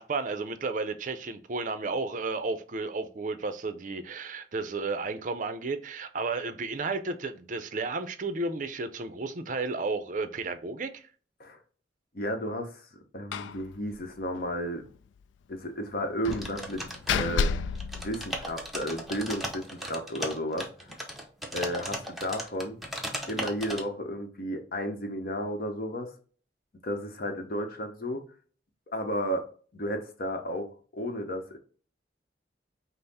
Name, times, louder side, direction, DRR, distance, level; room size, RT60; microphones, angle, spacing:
voice 1, 0.0-11.1, right 3 dB, 45° right, 0.5 m, -33 dB
voice 2, 12.1-14.9 15.5-17.5 17.9-20.7 21.5-22.8 23.3-26.1 26.8-28.2 28.9-29.5 29.7-31.6, equal, 55° left, 0.9 m, -33 dB
Slam, 13.3-13.6 13.9-14.0 14.3-14.5 16.2-18.8, left 5 dB, 90° left, 0.3 m, -31 dB
sound 1, 16.3-17.5 17.8-23.8, equal, ahead, 0.7 m, -37 dB
5.5 x 2.0 x 4.1 m
head